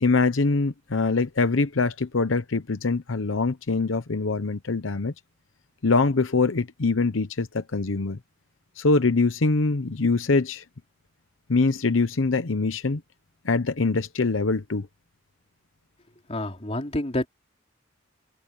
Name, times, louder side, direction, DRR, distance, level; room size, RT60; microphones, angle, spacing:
voice 1, 0.0-5.1 5.8-8.2 8.8-10.6 11.5-13.0 13.4-14.9, left 3 dB, 85° left, 0.9 m, -23 dB
voice 2, 16.3-17.3, left 1 dB, 35° left, 3.4 m, -28 dB
open air
head